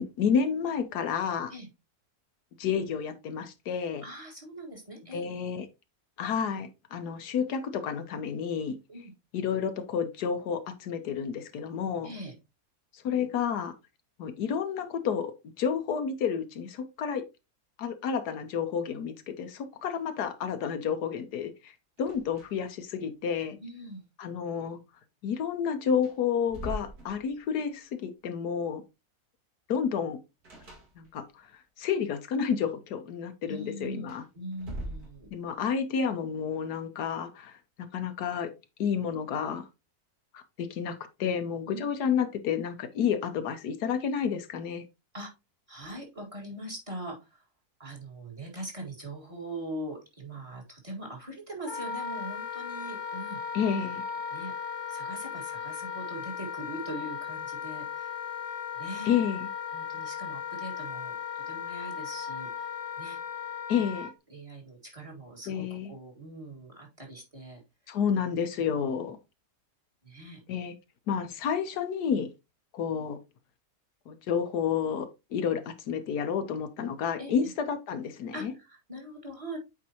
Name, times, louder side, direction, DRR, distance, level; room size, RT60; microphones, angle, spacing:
voice 1, 0.0-1.5 2.6-4.0 5.1-5.7 6.2-8.8 9.3-12.1 13.0-13.7 14.2-15.3 15.6-17.2 17.8-21.7 22.0-23.6 24.2-24.8 25.2-28.8 29.7-30.2 31.0-31.3 31.8-34.2 35.3-37.5 37.9-38.5 38.8-39.6 40.3-44.8 53.5-54.0 59.1-59.5 63.7-64.1 65.5-65.9 67.9-69.2 70.5-70.7 71.1-72.3 72.7-73.2 74.1-78.5, left 7 dB, 80° left, 1.4 m, -30 dB
voice 2, 4.0-5.3 8.9-9.1 12.0-12.3 23.6-24.0 33.5-35.3 41.6-41.9 45.1-45.3 45.7-47.4 47.8-53.4 54.3-54.5 54.9-58.2 58.7-59.1 59.7-62.5 63.0-63.2 64.3-67.6 68.6-68.8 70.0-70.4 77.2-77.4 78.3-79.6, right 1 dB, 20° right, 2.0 m, -41 dB
sound 1, 22.0-22.8 23.1-23.2 25.4-25.5 25.9-27.7 30.4-31.4 33.9-35.6, right 1 dB, 70° right, 2.7 m, -42 dB
Wind instrument woodwind instrument, 51.6-64.1, left 7 dB, 30° left, 0.4 m, -37 dB
8.5 x 4.7 x 2.9 m
omnidirectional pair, 1.7 m